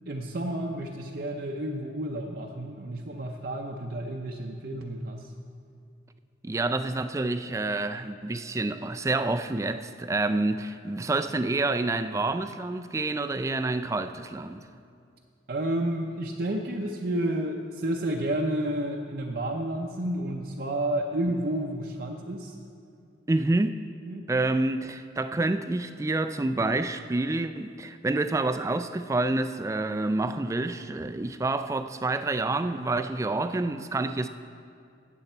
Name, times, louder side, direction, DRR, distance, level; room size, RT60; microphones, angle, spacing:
voice 1, 0.1-5.3 15.5-22.5 24.1-24.3, right 1 dB, 55° right, 0.6 m, -31 dB
voice 2, 6.4-14.6 23.3-23.8 24.3-34.3, right 2 dB, 15° right, 0.3 m, -28 dB
17.5 x 7.1 x 4.4 m
head